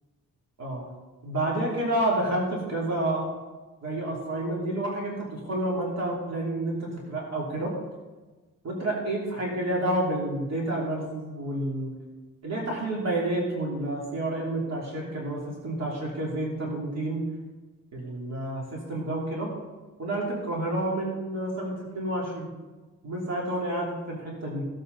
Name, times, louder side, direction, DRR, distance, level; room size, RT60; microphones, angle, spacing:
voice 1, 1.2-3.3 3.8-7.8 8.6-11.9 12.4-17.2 17.9-19.5 20.0-22.5 23.0-24.7, right 1 dB, 50° right, -3 dB, 3.1 m, -29 dB
16.0 x 8.1 x 4.0 m, 1.3 s
wide cardioid pair, 135°, 33 cm